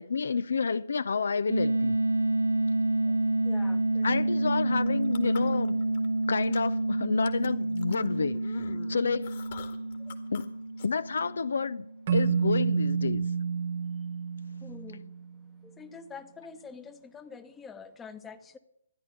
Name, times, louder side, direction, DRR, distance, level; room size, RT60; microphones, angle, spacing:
voice 1, 0.0-2.0 4.0-5.8 6.3-9.4 10.3-10.6 10.8-13.3, left 5 dB, 60° left, 0.4 m, -30 dB
sound 1, 1.5-12.2, right 2 dB, 75° right, 1.4 m, -29 dB
voice 2, 3.4-4.2 10.1-10.2 14.6-15.0 15.6-18.6, left 5 dB, 10° left, 0.9 m, -46 dB
sound 2, 4.8-6.1 6.4-6.8 7.2-10.4 10.8-10.9, left 6 dB, 40° left, 1.9 m, -44 dB
Keyboard (musical), 12.1-15.3, right 6 dB, 40° right, 0.7 m, -29 dB
14.0 x 10.5 x 6.7 m
figure-of-eight pair, 140°, 0 cm